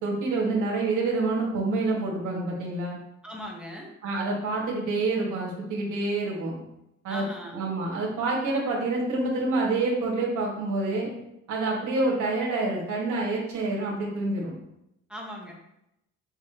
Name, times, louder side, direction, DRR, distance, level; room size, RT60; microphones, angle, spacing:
voice 1, 0.0-3.0 4.0-6.6 7.0-7.2 7.5-11.1 11.5-14.5, right 3 dB, 80° right, -3 dB, 2.1 m, -27 dB
voice 2, 3.2-3.9 7.1-7.6 15.1-15.5, equal, 5° right, -2 dB, 1.6 m, -38 dB
6.1 x 5.9 x 3.0 m, 0.83 s
cardioid pair, 90°, 30 cm